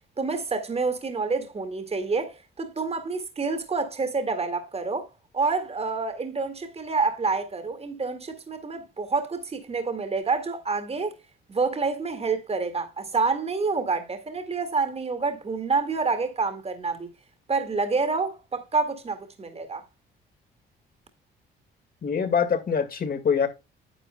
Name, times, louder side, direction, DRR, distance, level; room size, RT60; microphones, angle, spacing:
voice 1, 0.2-5.1 5.3-11.2 11.5-17.1 17.5-19.8, right 4 dB, 30° right, 2.0 m, -28 dB
voice 2, 22.0-23.5, left 6 dB, 50° left, 2.0 m, -24 dB
10.5 x 7.9 x 2.2 m
cardioid pair, 90°, 20 cm